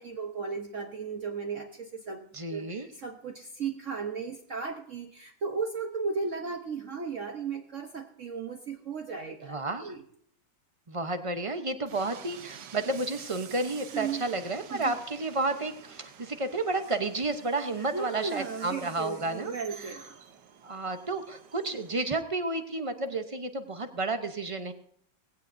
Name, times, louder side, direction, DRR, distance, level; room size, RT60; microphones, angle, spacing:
voice 1, 0.0-10.0 13.9-14.2 14.7-15.0 17.8-20.0, right 5 dB, 50° right, 3 dB, 1.2 m, -35 dB
voice 2, 2.3-2.9 9.4-9.9 10.9-19.9 20.6-24.7, right 2 dB, 35° right, 8 dB, 0.5 m, -31 dB
Train, 11.9-22.2, right 8 dB, 75° right, 1.6 m, -50 dB
18.5 x 16.5 x 2.6 m, 0.67 s
omnidirectional pair, 1.9 m